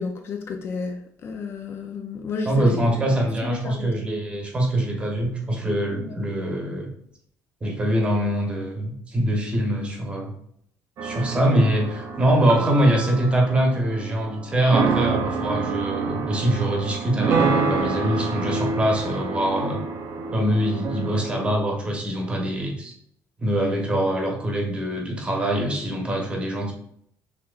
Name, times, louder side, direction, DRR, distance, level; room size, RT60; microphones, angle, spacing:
voice 1, 0.0-4.1 6.0-6.2, left 4 dB, 40° left, 4 dB, 0.4 m, -32 dB
voice 2, 2.5-6.9 7.6-10.3 11.0-19.8 20.3-22.9 23.4-26.7, right 1 dB, 20° right, 1 dB, 0.9 m, -23 dB
sound 1, 11.0-21.5, right 4 dB, 50° right, 0.6 m, -27 dB
6.2 x 2.8 x 2.4 m, 0.69 s
cardioid pair, 165°, 6 cm